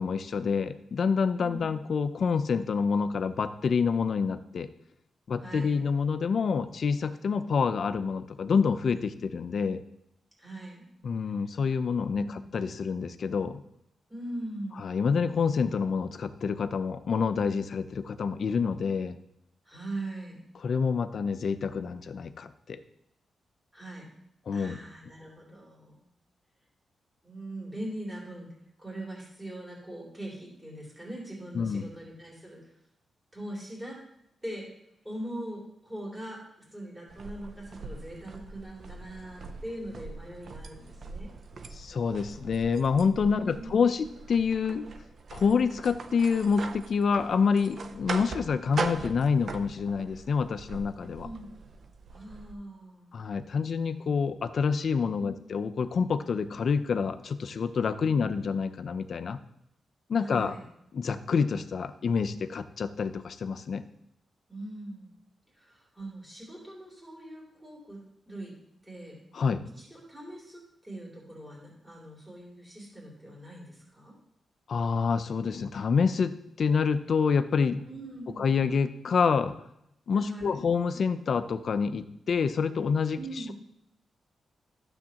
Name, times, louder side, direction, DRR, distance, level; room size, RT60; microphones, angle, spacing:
voice 1, 0.0-4.7 5.3-9.8 11.0-13.6 14.8-19.2 20.6-22.8 24.5-24.8 31.5-31.9 41.7-44.9 45.3-51.3 53.1-59.4 60.1-60.5 60.9-63.8 69.3-69.7 74.7-77.9 78.4-79.5 80.1-83.2, left 5 dB, 55° left, 11 dB, 0.5 m, -27 dB
voice 2, 1.4-1.7 5.4-5.8 10.4-10.8 11.2-11.4 12.1-12.5 14.1-14.9 19.6-20.4 23.7-24.1 24.5-26.0 27.2-28.5 28.8-32.8 33.3-34.0 34.4-34.7 35.0-36.4 36.7-41.3 43.3-43.8 51.2-51.6 52.1-53.1 55.2-55.4 58.0-58.3 60.2-60.7 64.5-65.1 65.5-68.5 68.8-69.2 69.8-74.1 77.9-78.4 80.1-80.6 83.1-83.5, right 1 dB, 15° right, -5 dB, 3.2 m, -41 dB
sound 1, 37.1-52.5, right 4 dB, 55° right, 0.5 m, -41 dB
12.0 x 7.2 x 2.9 m, 0.78 s
cardioid pair, 115°, 0 cm